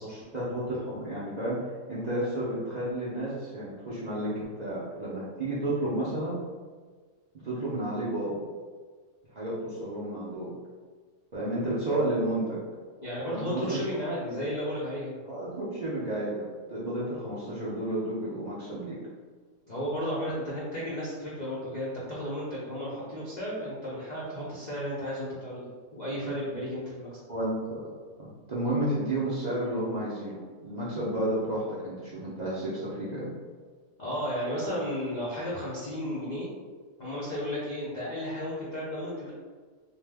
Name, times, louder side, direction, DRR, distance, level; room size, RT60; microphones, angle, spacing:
voice 1, 0.2-6.4 7.4-8.4 9.3-10.5 11.3-12.6 13.3-13.8 15.2-19.0 27.3-27.8 28.2-33.3, right 1 dB, 70° right, -9 dB, 0.4 m, -31 dB
voice 2, 13.0-15.2 19.7-27.2 34.0-36.5 37.0-39.3, equal, 70° left, -8 dB, 0.4 m, -33 dB
2.6 x 2.0 x 3.3 m, 1.5 s
omnidirectional pair, 1.6 m